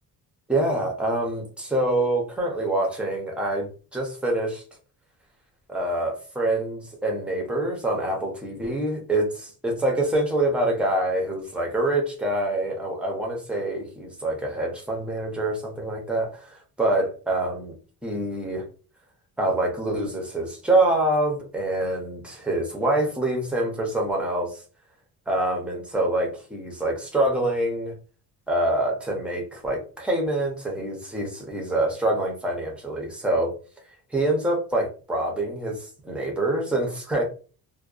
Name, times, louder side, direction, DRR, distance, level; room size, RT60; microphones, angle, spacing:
voice 1, 0.5-4.6 5.7-17.7 18.0-18.6 19.4-24.6 25.3-27.9 28.5-33.5 34.1-37.2, right 1 dB, 5° right, 0 dB, 0.6 m, -25 dB
2.6 x 2.1 x 2.3 m, 0.37 s
cardioid pair, 155°, 39 cm